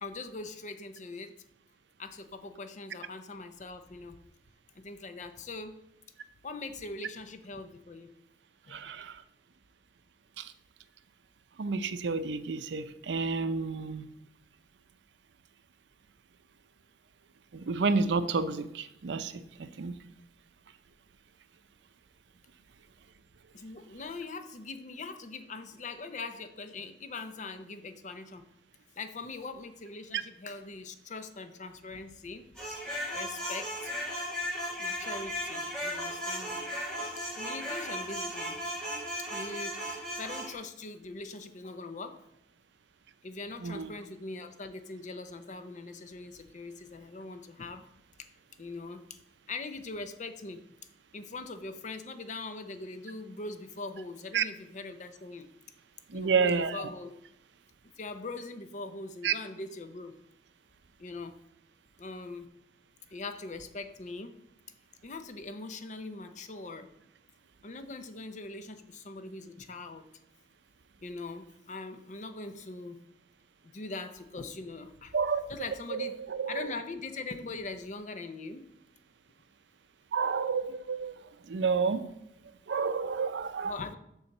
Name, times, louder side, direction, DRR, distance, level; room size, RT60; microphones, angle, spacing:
voice 1, 0.0-1.3 2.0-4.2 4.7-5.8 6.4-8.1 8.7-8.8 23.5-28.4 29.0-32.5 33.1-33.9 34.8-36.7 37.4-38.6 39.3-42.2 43.2-47.8 48.6-49.2 49.5-50.6 51.1-55.5 56.1-57.1 58.0-60.2 61.0-61.4 62.0-62.5 63.1-64.4 65.0-66.9 67.6-70.1 71.0-73.0 73.6-75.1 75.5-76.2 76.5-78.7 83.6-84.0, left 3 dB, 45° left, 9 dB, 0.6 m, -41 dB
voice 2, 8.7-9.2 10.4-10.5 11.6-14.1 17.5-19.4 19.8-20.0 43.6-43.9 54.3-54.4 56.1-56.7 59.2-59.3 75.1-75.4 75.9-76.6 80.1-81.1 81.5-82.0 82.7-83.7, right 5 dB, 85° right, 11 dB, 0.5 m, -30 dB
sound 1, 32.6-40.5, equal, 5° left, 2.3 m, -36 dB
7.0 x 3.9 x 6.6 m, 0.80 s
head